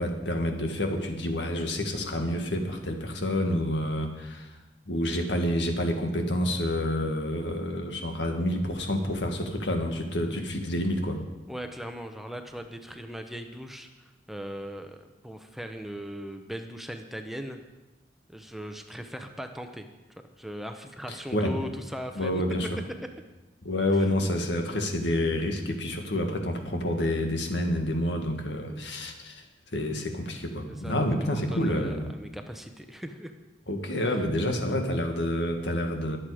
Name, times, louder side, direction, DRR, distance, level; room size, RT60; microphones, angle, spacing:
voice 1, 0.0-4.5 4.9-11.2 21.3-21.5 22.2-22.7 23.6-29.4 29.7-32.1 33.7-36.2, left 1 dB, 80° left, 4 dB, 1.9 m, -28 dB
voice 2, 11.5-17.6 18.3-19.9 20.4-22.4 30.7-33.3 34.1-34.2, equal, ahead, 5 dB, 0.8 m, -39 dB
22.5 x 7.7 x 5.0 m, 1.1 s
head